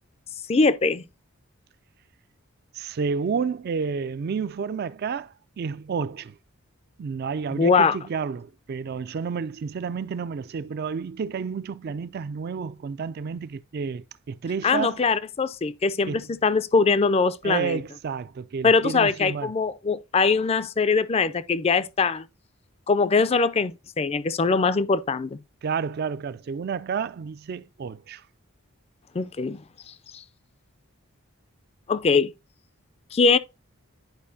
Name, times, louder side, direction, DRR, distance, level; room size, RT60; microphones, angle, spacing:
voice 1, 0.5-1.0 7.5-8.0 14.6-17.8 18.6-22.3 22.9-25.4 29.1-29.6 30.1-30.2 31.9-32.3 33.1-33.4, left 4 dB, 30° left, 0.4 m, -22 dB
voice 2, 2.7-6.3 7.0-15.0 16.1-16.3 17.4-19.5 25.6-28.2, right 6 dB, 45° right, 0.3 m, -30 dB
10.5 x 5.0 x 2.7 m
head